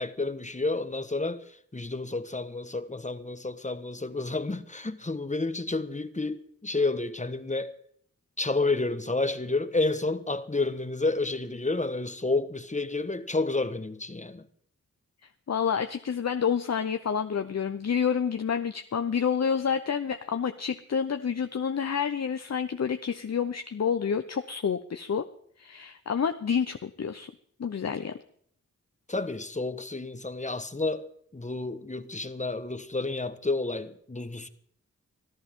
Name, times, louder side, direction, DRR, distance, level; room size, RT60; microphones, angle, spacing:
voice 1, 0.0-1.4 1.7-7.7 8.4-14.5 29.1-31.1 31.3-34.5, left 3 dB, 25° left, 1.4 m, -30 dB
voice 2, 15.5-25.3 25.6-27.3 27.6-28.1, left 7 dB, 55° left, 0.8 m, -28 dB
24.5 x 15.0 x 3.7 m
cardioid pair, 60°, 30 cm